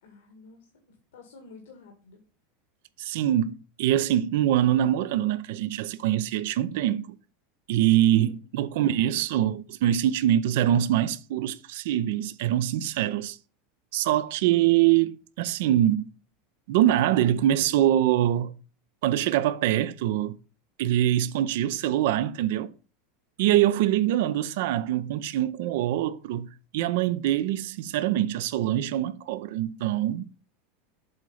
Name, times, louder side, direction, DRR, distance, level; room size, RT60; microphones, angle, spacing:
voice 1, 0.0-2.2 7.9-8.4 23.7-24.2, left 3 dB, 85° left, 2.1 m, -51 dB
voice 2, 3.0-7.2 7.7-13.4 13.9-16.1 16.7-18.5 19.0-20.4 20.8-22.7 23.4-26.5 26.7-30.3, right 12 dB, 70° right, 0.6 m, -24 dB
7.9 x 3.9 x 5.5 m
supercardioid pair, 115°, 0 cm